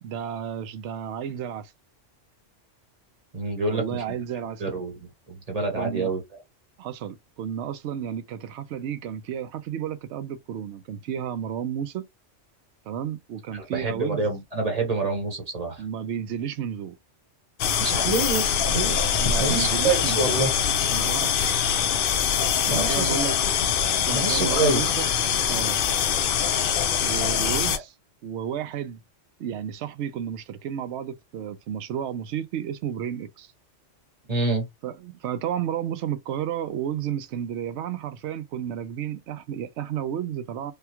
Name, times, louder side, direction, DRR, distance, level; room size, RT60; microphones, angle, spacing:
voice 1, 0.0-1.7 3.7-4.6 5.8-6.1 6.8-12.1 12.9-14.3 15.8-16.9 19.2-20.5 20.9-21.6 22.6-23.4 24.1-25.8 27.0-27.9 28.2-29.0 29.4-33.5 34.8-40.7, right 9 dB, 70° right, 0.8 m, -32 dB
voice 2, 3.3-4.0 4.6-5.0 5.3-6.2 13.5-15.8 17.8-19.0 19.4-20.5 22.6-23.3 24.1-24.8 34.3-34.7, right 3 dB, 30° right, 1.2 m, -27 dB
sound 1, 17.6-27.8, left 8 dB, 60° left, 0.6 m, -23 dB
3.4 x 2.3 x 2.9 m
omnidirectional pair, 1.3 m